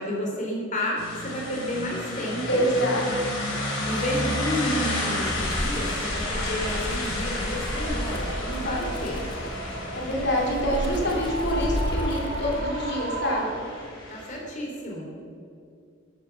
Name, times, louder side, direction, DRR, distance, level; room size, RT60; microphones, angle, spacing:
voice 1, 0.0-2.7 3.8-9.3 14.1-15.0, equal, 40° left, -2 dB, 3.2 m, -31 dB
sound 1, 1.0-14.3, left 1 dB, 85° left, 4.0 m, -32 dB
voice 2, 2.5-3.3 8.6-8.8 9.9-13.6, equal, 55° left, -1 dB, 3.2 m, -26 dB
Wind, 5.2-12.9, equal, 25° left, 1.4 m, -33 dB
sound 2, 7.8-13.5, right 2 dB, 60° right, 1.7 m, -37 dB
13.0 x 10.5 x 5.8 m, 2.5 s
head